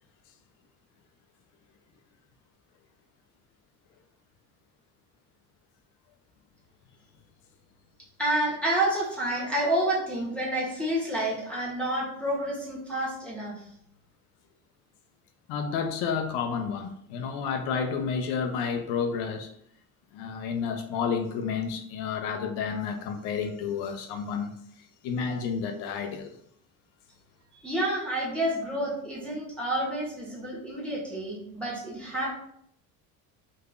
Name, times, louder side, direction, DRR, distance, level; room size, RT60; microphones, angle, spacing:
voice 1, 8.2-13.5 27.6-32.3, right 1 dB, 5° left, -5 dB, 1.1 m, -29 dB
voice 2, 15.5-19.5 20.1-24.5 25.0-26.3, left 6 dB, 65° left, 6 dB, 0.6 m, -30 dB
3.8 x 2.7 x 2.4 m, 0.70 s
hypercardioid pair, 70°, 43 cm